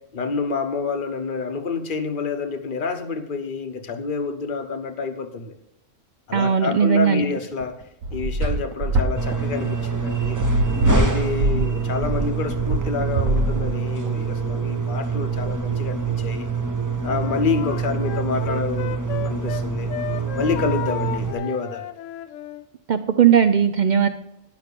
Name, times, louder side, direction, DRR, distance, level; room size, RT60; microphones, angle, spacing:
voice 1, 0.0-5.5 6.3-7.8 8.1-10.4 10.9-16.5 17.0-19.0 19.2-19.9 20.4-21.8, left 4 dB, 45° left, 7 dB, 1.1 m, -28 dB
voice 2, 6.3-7.2 22.9-24.1, right 8 dB, 60° right, 9 dB, 0.4 m, -18 dB
sound 1, 7.5-14.1, right 1 dB, 90° right, 1.3 m, -23 dB
sound 2, 9.2-21.3, right 5 dB, 15° right, 0.8 m, -26 dB
Wind instrument woodwind instrument, 17.0-19.6 19.9-22.7, left 11 dB, 75° left, 0.9 m, -33 dB
11.0 x 5.8 x 6.8 m, 0.83 s
omnidirectional pair, 1.4 m